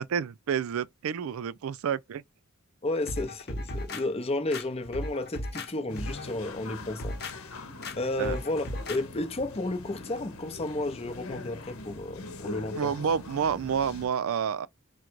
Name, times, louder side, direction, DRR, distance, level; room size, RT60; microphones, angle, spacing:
voice 1, 0.0-2.2 8.2-8.4 12.8-14.7, right 7 dB, 80° right, 0.4 m, -29 dB
voice 2, 2.8-7.2 7.4-7.6 8.0-12.9, left 2 dB, 30° left, 0.6 m, -32 dB
sound 1, 3.1-4.0 4.5-5.7 6.0-6.3 6.8-7.3 7.8-8.0 8.2-9.0 9.4-9.5, left 1 dB, 50° left, 0.9 m, -36 dB
sound 2, 5.9-14.1, left 2 dB, 80° left, 0.9 m, -43 dB
3.8 x 2.1 x 4.4 m
head